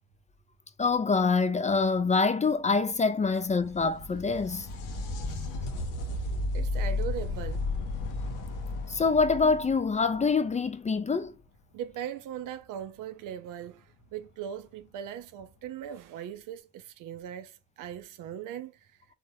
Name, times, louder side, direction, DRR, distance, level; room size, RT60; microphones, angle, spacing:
voice 1, 0.8-4.7 8.9-11.3, left 4 dB, 20° left, 0.4 m, -25 dB
sound 1, 3.3-10.9 14.3-14.4 15.4-15.5, left 2 dB, 70° left, 0.7 m, -34 dB
voice 2, 6.5-7.6 11.7-18.9, right 9 dB, 70° right, 0.5 m, -39 dB
3.5 x 2.1 x 2.8 m
hypercardioid pair, 45°, 34 cm